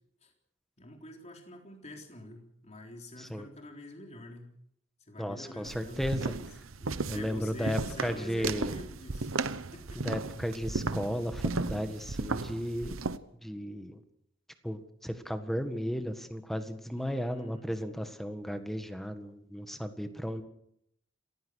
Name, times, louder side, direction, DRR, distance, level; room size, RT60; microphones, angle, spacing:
voice 1, 0.8-4.5 5.0-6.5 6.8-9.3 9.7-10.0 16.9-17.7, left 1 dB, 35° left, 2 dB, 3.8 m, -47 dB
voice 2, 3.2-3.5 5.2-6.3 7.1-8.8 10.0-13.0 13.4-14.0 14.6-20.4, equal, ahead, 8 dB, 1.7 m, -35 dB
sound 1, 5.6-13.2, right 3 dB, 85° right, 1.0 m, -35 dB
27.5 x 15.5 x 6.5 m, 0.75 s
head